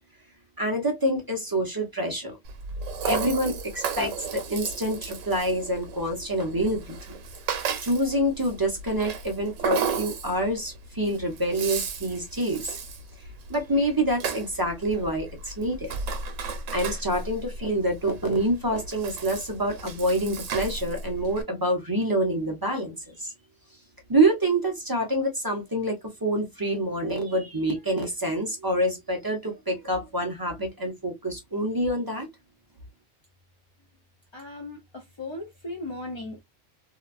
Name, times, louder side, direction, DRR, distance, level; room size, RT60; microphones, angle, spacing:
voice 1, 0.6-2.4 3.0-7.2 7.8-12.8 13.5-15.9 16.7-23.3 24.1-32.3, right 1 dB, 35° right, 0.4 m, -27 dB
Rattle (instrument), 2.5-21.4, right 5 dB, 85° right, 1.0 m, -35 dB
voice 2, 34.3-36.4, left 2 dB, 40° left, 0.4 m, -37 dB
2.8 x 2.2 x 2.3 m
omnidirectional pair, 1.3 m